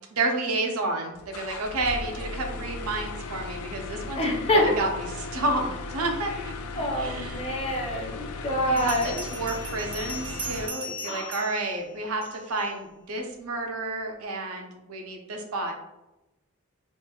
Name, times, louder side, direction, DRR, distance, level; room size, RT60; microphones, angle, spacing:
voice 1, 0.1-6.3 6.8-7.4 8.6-15.7, right 2 dB, 85° right, 3 dB, 0.6 m, -30 dB
sound 1, 1.1-10.7, left 3 dB, 90° left, 0.3 m, -37 dB
voice 2, 4.2-4.6 6.8-9.2 11.1-11.3, equal, 30° left, -1 dB, 0.5 m, -26 dB
Bell, 8.8-12.6, right 1 dB, 25° right, 0.5 m, -38 dB
3.0 x 2.4 x 2.3 m, 0.96 s
head